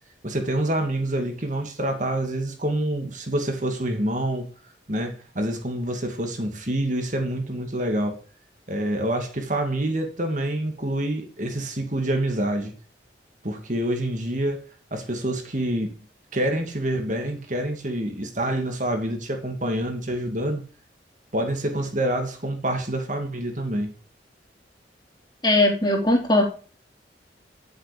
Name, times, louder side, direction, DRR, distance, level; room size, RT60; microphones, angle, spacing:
voice 1, 0.2-4.5 4.9-8.2 8.7-12.7 13.4-14.6 14.9-15.9 16.3-20.6 21.3-23.9, right 1 dB, 45° right, 2.4 m, -27 dB
voice 2, 25.4-26.4, left 1 dB, 25° left, 3.4 m, -19 dB
11.5 x 7.8 x 5.2 m
head